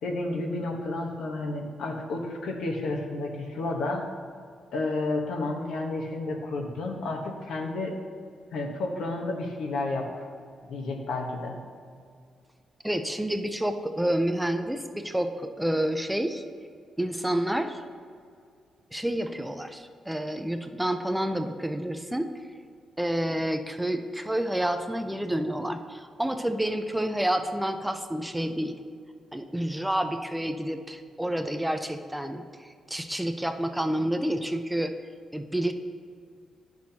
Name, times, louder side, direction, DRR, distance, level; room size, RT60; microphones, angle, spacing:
voice 1, 0.0-4.0 4.7-7.9 8.5-10.2 10.6-11.6, left 2 dB, 85° left, 1 dB, 1.1 m, -31 dB
voice 2, 12.8-16.4 17.0-17.8 18.9-22.3 23.0-28.8 29.3-34.9 35.3-35.7, right 1 dB, 5° right, 7 dB, 0.4 m, -29 dB
10.0 x 6.1 x 2.8 m, 2.2 s
cardioid pair, 120°, 0 cm